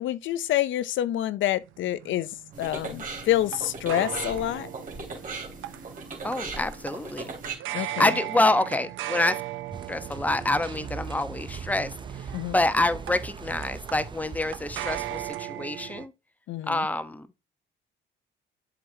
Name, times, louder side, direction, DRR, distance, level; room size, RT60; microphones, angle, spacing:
voice 1, 0.0-4.7 7.7-8.1 12.3-12.5 16.5-16.9, left 13 dB, 75° left, 0.5 m, -27 dB
Ping Pong, 1.6-16.1, right 14 dB, 80° right, 0.6 m, -38 dB
sound 1, 2.5-7.5, right 3 dB, 45° right, 2.8 m, -38 dB
voice 2, 6.2-7.3 7.7-9.4 9.9-16.1 16.7-17.3, left 2 dB, 10° left, 0.9 m, -27 dB
sound 2, 9.7-15.3, right 5 dB, 25° right, 0.6 m, -40 dB
7.6 x 5.0 x 2.7 m
cardioid pair, 90°, 20 cm